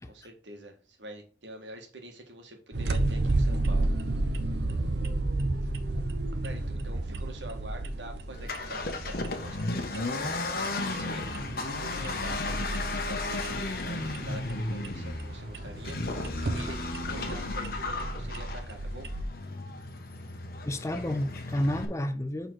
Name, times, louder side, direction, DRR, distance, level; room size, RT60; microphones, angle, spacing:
voice 1, 0.1-3.9 6.4-11.2 11.8-16.2 16.5-19.1, right 1 dB, 90° right, 1.7 m, -46 dB
sound 1, 2.7-19.3, right 2 dB, 70° right, 0.7 m, -32 dB
Accelerating revving vroom, 8.3-21.8, left 2 dB, 55° left, 1.0 m, -34 dB
voice 2, 20.6-22.5, left 1 dB, 15° left, 0.4 m, -30 dB
6.4 x 4.0 x 4.6 m
head